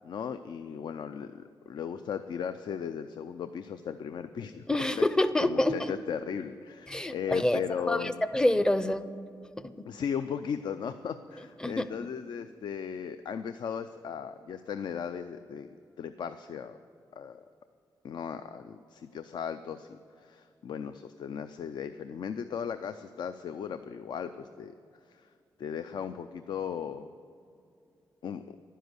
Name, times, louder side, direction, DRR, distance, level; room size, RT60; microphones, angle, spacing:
voice 1, 0.0-4.6 5.4-8.2 9.9-16.8 17.1-17.4 18.0-24.7 25.1-25.3 25.6-27.1 28.2-28.6, left 7 dB, 70° left, 10 dB, 0.5 m, -37 dB
voice 2, 4.7-5.9 6.9-7.6 7.9-9.0 9.6-9.9 11.6-11.9, left 1 dB, 10° left, 12 dB, 0.5 m, -27 dB
11.0 x 10.0 x 8.1 m, 2.5 s
wide cardioid pair, 155°, 8 cm